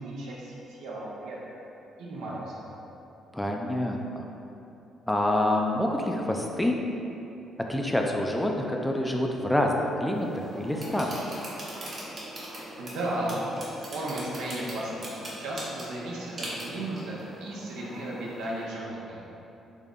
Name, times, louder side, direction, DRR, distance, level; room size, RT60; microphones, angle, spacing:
voice 1, 0.0-1.4 2.0-2.6 12.8-19.2, right 1 dB, 85° right, -5 dB, 0.6 m, -35 dB
voice 2, 3.3-4.3 5.1-6.8 7.7-11.2, left 1 dB, 5° left, 1 dB, 0.3 m, -27 dB
sound 1, 10.1-18.7, right 1 dB, 45° right, 0.9 m, -41 dB
3.5 x 2.1 x 3.6 m, 2.9 s
cardioid pair, 90°, 0 cm